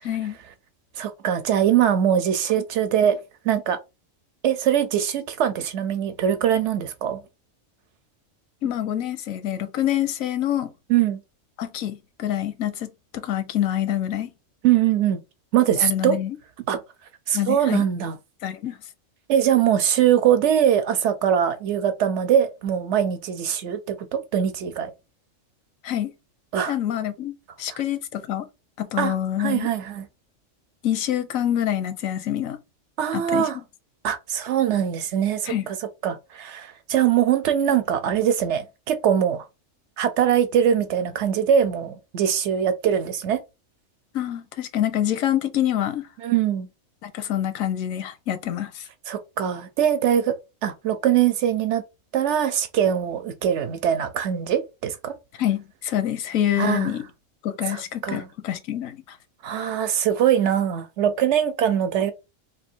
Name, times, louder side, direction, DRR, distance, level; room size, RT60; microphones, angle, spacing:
voice 1, 0.0-0.4 8.6-10.7 11.6-14.3 15.8-16.4 17.3-17.8 18.4-18.8 25.8-26.1 26.7-28.5 28.8-29.7 30.8-32.6 33.1-33.5 35.5-35.7 44.1-46.1 47.0-48.8 55.4-57.0 57.4-59.2, left 11 dB, 85° left, 1.1 m, -26 dB
voice 2, 1.0-3.2 3.4-3.8 4.4-7.2 10.9-11.2 14.6-15.2 15.5-16.1 16.7-16.8 17.3-18.2 19.3-24.9 26.5-26.8 27.7-27.8 29.0-30.0 33.0-33.6 34.0-35.8 36.0-39.4 40.0-43.4 46.2-46.7 49.1-50.4 50.6-51.8 52.1-55.1 56.6-56.9 57.7-58.3 59.4-62.1, right 9 dB, 65° right, 0.8 m, -22 dB
3.2 x 2.6 x 4.3 m
omnidirectional pair, 1.4 m